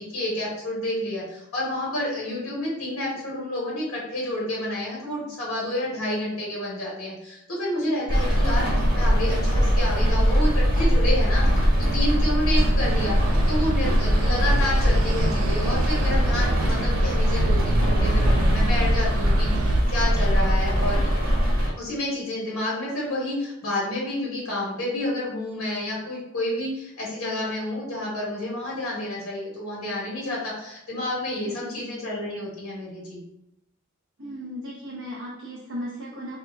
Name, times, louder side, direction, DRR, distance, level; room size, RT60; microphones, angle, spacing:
voice 1, 0.0-13.1 13.5-21.0 21.8-33.2, left 1 dB, 90° left, -5 dB, 1.2 m, -29 dB
Rain, 8.1-21.7, equal, 45° right, 1.2 m, -21 dB
sound 1, 12.8-19.8, right 3 dB, 80° right, 0.3 m, -30 dB
voice 2, 31.5-31.8 34.2-36.4, equal, 60° right, -7 dB, 0.8 m, -36 dB
2.8 x 2.3 x 3.4 m, 0.85 s
head